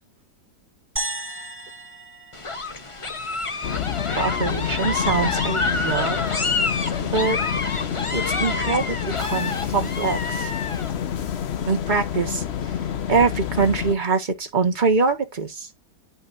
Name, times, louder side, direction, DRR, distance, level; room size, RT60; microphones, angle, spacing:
sound 1, 1.0-3.4, right 2 dB, 10° right, 0.7 m, -34 dB
sound 2, 2.3-10.9, left 3 dB, 25° left, 0.6 m, -28 dB
sound 3, 3.6-13.9, left 9 dB, 85° left, 0.5 m, -28 dB
voice 1, 4.2-6.2 7.0-7.4 8.1-10.5 11.7-12.4 13.1-15.7, right 4 dB, 25° right, 1.5 m, -23 dB
11.0 x 4.4 x 2.6 m
omnidirectional pair, 2.0 m